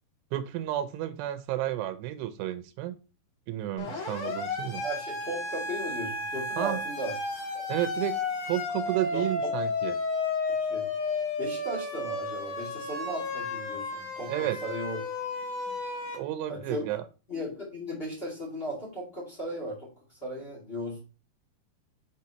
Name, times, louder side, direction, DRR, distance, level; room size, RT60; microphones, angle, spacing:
voice 1, 0.3-3.0 3.5-4.8 6.6-6.8 7.7-8.2 8.5-10.0 14.3-14.6 16.1-17.0, right 13 dB, 90° right, 11 dB, 2.7 m, -31 dB
Siren, 3.8-16.2, left 3 dB, 65° left, 1.4 m, -33 dB
voice 2, 4.8-7.1 7.5-7.7 9.1-9.3 10.6-10.9 11.4-15.0 15.6-15.7 16.5-16.9 17.3-21.1, equal, 20° left, -5 dB, 1.5 m, -36 dB
6.2 x 5.9 x 2.8 m, 0.33 s
omnidirectional pair, 4.7 m